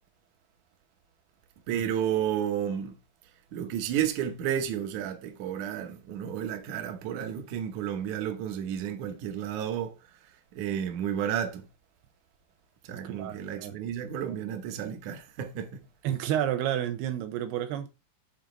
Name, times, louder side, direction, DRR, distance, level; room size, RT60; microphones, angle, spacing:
voice 1, 1.7-3.0 3.5-10.0 10.5-11.7 12.9-15.8, right 9 dB, 70° right, 1.8 m, -32 dB
voice 2, 12.9-13.7 16.0-17.9, right 11 dB, 90° right, 2.8 m, -30 dB
7.3 x 3.5 x 5.1 m
omnidirectional pair, 4.7 m